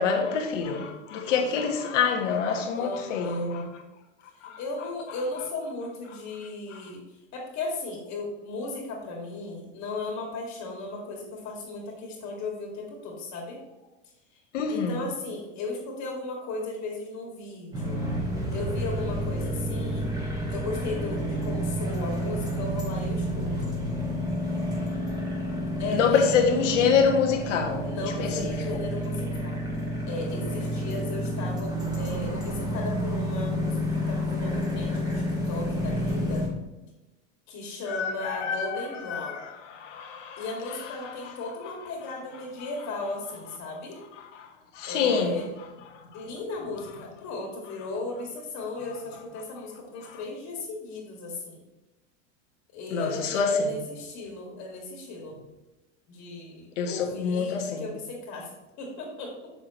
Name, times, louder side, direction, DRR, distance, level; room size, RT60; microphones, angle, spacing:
voice 1, 0.0-3.7 4.4-4.6 14.5-15.0 25.9-28.5 37.9-38.8 39.1-40.4 41.0-41.3 44.4-44.5 44.7-45.4 52.9-53.7 56.8-57.9, left 6 dB, 75° left, 1.5 m, -26 dB
voice 2, 2.7-3.5 4.3-7.0 7.3-13.6 14.3-14.4 14.7-18.0 18.5-20.1 20.5-23.7 25.8-26.3 27.8-29.6 30.1-33.8 34.1-36.4 37.5-39.4 40.4-44.0 44.8-45.5 46.1-51.6 52.7-55.4 56.1-58.5 58.8-59.3, left 2 dB, 45° left, 2.1 m, -36 dB
sound 1, 17.7-36.5, equal, 10° right, 2.4 m, -30 dB
7.0 x 6.8 x 3.0 m
hypercardioid pair, 100°, 37 cm